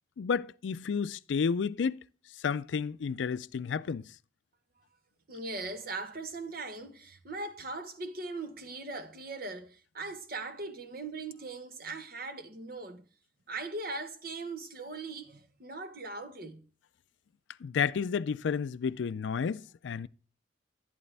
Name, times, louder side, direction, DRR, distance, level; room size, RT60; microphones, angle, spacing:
voice 1, 0.2-2.0 2.4-4.1 17.6-20.1, left 6 dB, 75° left, 0.4 m, -31 dB
voice 2, 5.3-13.1 13.5-16.7, right 3 dB, 55° right, 1.1 m, -40 dB
11.5 x 11.0 x 3.4 m
head